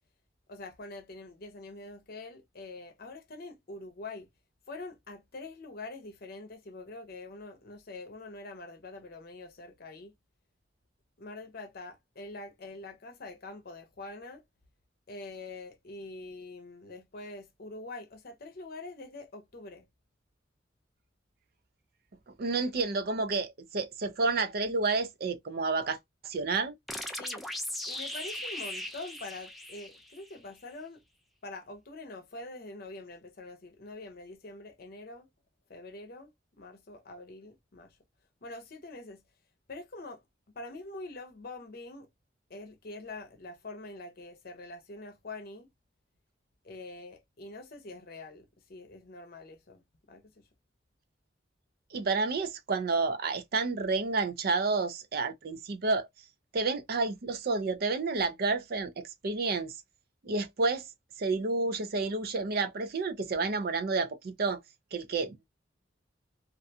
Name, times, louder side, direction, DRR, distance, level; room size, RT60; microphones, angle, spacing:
voice 1, 0.5-4.3 4.7-10.1 11.2-14.4 15.1-19.9 27.2-27.5 27.9-31.0 31.4-35.3 35.7-36.3 36.6-38.0 38.4-39.2 39.7-40.2 40.5-42.1 42.5-45.7 46.6-50.5, left 2 dB, 55° left, 0.7 m, -45 dB
voice 2, 22.4-26.0 26.2-26.7 51.9-56.1 56.5-59.7 60.2-60.9 61.2-64.6 64.9-65.4, right 3 dB, 55° right, 0.5 m, -30 dB
sound 1, 26.9-30.4, left 1 dB, ahead, 0.3 m, -38 dB
2.5 x 2.2 x 2.6 m
head